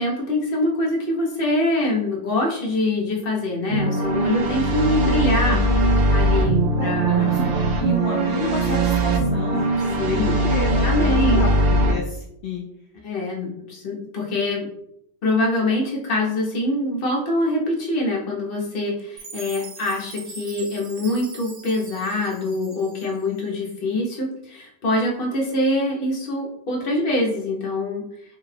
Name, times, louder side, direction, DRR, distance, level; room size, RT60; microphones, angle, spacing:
voice 1, 0.0-7.3 10.0-10.3 10.8-11.5 13.0-14.7 15.2-28.0, left 1 dB, 50° left, -2 dB, 1.0 m, -24 dB
sound 1, 3.7-11.9, right 1 dB, 60° right, 0.8 m, -20 dB
voice 2, 6.8-9.7 10.1-12.6, left 4 dB, 70° left, -3 dB, 0.8 m, -31 dB
Chime, 19.2-23.4, right 4 dB, 85° right, 1.1 m, -41 dB
3.5 x 2.3 x 3.3 m, 0.74 s
omnidirectional pair, 1.3 m